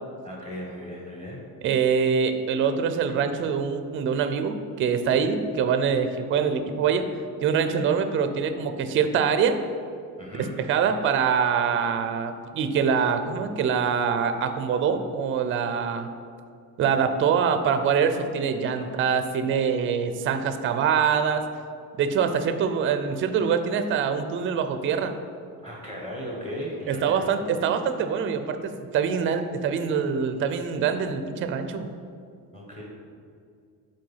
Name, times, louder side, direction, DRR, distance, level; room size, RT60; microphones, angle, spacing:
voice 1, 0.2-1.4 10.2-10.5 18.8-18.9 25.6-27.4 32.5-32.8, equal, 15° left, -3 dB, 1.2 m, -36 dB
voice 2, 1.6-7.1 7.4-9.6 10.4-16.1 16.8-21.4 22.0-25.1 26.9-31.9, right 6 dB, 35° right, 9 dB, 0.4 m, -24 dB
7.7 x 4.4 x 5.5 m, 2.3 s
cardioid pair, 175°, 35 cm